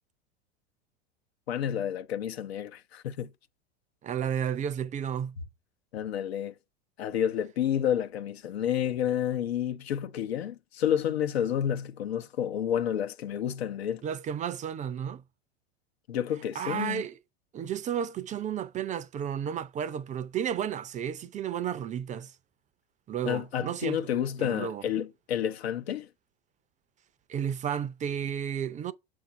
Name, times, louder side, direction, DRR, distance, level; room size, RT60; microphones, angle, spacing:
voice 1, 1.5-3.3 5.9-6.5 7.0-14.0 16.1-17.0 23.2-26.1, left 9 dB, 80° left, 0.8 m, -30 dB
voice 2, 4.0-5.4 14.0-15.2 16.5-17.2 17.5-22.3 23.1-24.1 24.4-24.8 27.3-28.9, right 8 dB, 25° right, 0.5 m, -32 dB
7.3 x 2.6 x 5.5 m
hypercardioid pair, 95°, 31 cm